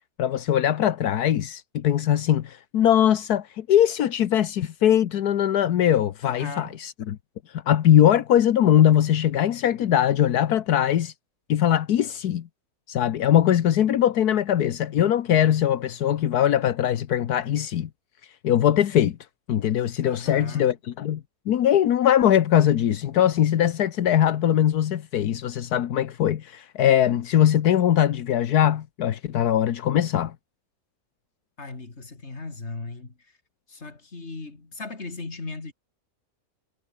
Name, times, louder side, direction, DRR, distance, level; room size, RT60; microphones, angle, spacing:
voice 1, 0.2-7.2 7.5-11.1 11.5-12.5 12.9-17.9 18.4-19.2 19.5-30.3, left 10 dB, 80° left, 1.5 m, -21 dB
voice 2, 6.2-6.8 20.0-20.7 31.6-33.1 33.7-35.7, left 3 dB, 45° left, 3.3 m, -37 dB
omnidirectional pair, 1.6 m